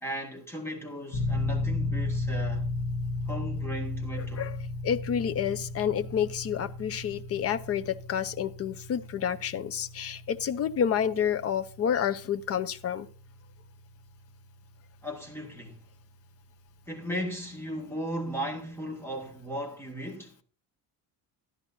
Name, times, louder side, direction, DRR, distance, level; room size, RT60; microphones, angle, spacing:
voice 1, 0.0-2.7 3.3-4.5 15.0-15.8 16.9-20.4, equal, 5° left, 2.0 m, -36 dB
sound 1, 1.1-15.5, left 2 dB, 90° left, 1.5 m, -35 dB
voice 2, 4.2-4.6 4.8-13.1, left 8 dB, 35° left, 0.7 m, -29 dB
13.5 x 11.0 x 2.7 m
cardioid pair, 165°, 42 cm